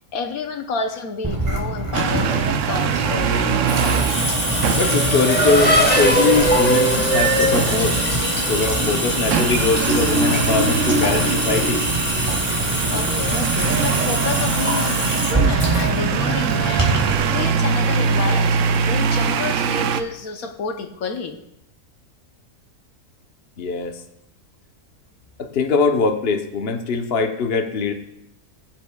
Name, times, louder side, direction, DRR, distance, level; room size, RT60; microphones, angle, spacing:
voice 1, 0.1-4.1 12.9-21.4, left 5 dB, 70° left, 5 dB, 1.3 m, -29 dB
Water tap faucet / Sink (filling or washing) / Drip, 1.2-17.2, right 1 dB, 10° right, 3.3 m, -23 dB
sound 1, 1.9-20.0, right 6 dB, 65° right, 0.9 m, -23 dB
Race car auto racing / Accelerating revving vroom, 2.8-8.8, right 1 dB, 5° left, 1.1 m, -22 dB
voice 2, 4.7-8.0 8.4-11.8 23.6-24.0 25.4-27.9, left 4 dB, 45° left, 4 dB, 1.0 m, -22 dB
20.5 x 7.6 x 2.3 m, 0.85 s
omnidirectional pair, 1.6 m